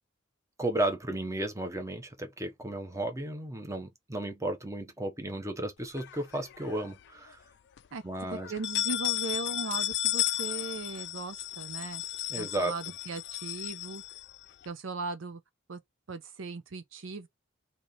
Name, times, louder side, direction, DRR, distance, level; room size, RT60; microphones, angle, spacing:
voice 1, 0.6-7.4 8.0-8.5 12.3-12.7, right 1 dB, 15° right, 0.9 m, -34 dB
sound 1, 6.0-6.9 7.3-7.4 7.8-7.9 8.4-14.7, left 15 dB, 60° left, 0.4 m, -34 dB
voice 2, 8.3-12.0 12.4-14.0 14.7-15.4 15.7-15.8 16.1-17.3, right 3 dB, 70° right, 0.6 m, -38 dB
3.2 x 2.8 x 3.9 m
head